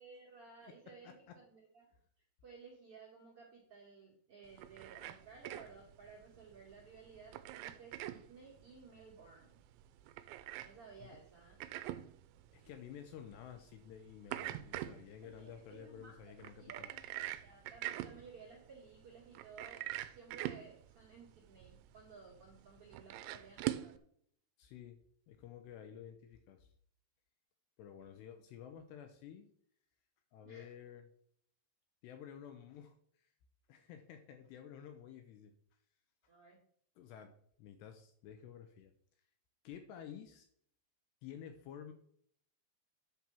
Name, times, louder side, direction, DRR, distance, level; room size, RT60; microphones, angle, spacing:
voice 1, 0.0-1.9 2.2-9.6 10.5-11.6 15.2-16.2 16.6-24.0 30.4-30.7 36.3-36.6, right 4 dB, 50° right, -2 dB, 1.8 m, -57 dB
voice 2, 1.0-1.4 11.0-11.1 12.5-16.9 24.6-25.0 25.3-26.7 27.8-29.5 30.3-31.1 32.0-33.3 33.7-35.5 37.0-37.3 37.6-38.9 39.6-40.5 41.2-41.9, left 9 dB, 75° left, 7 dB, 2.7 m, -52 dB
sound 1, 4.5-24.0, right 14 dB, 80° right, 2.8 m, -45 dB
10.5 x 4.5 x 7.0 m, 0.64 s
omnidirectional pair, 5.4 m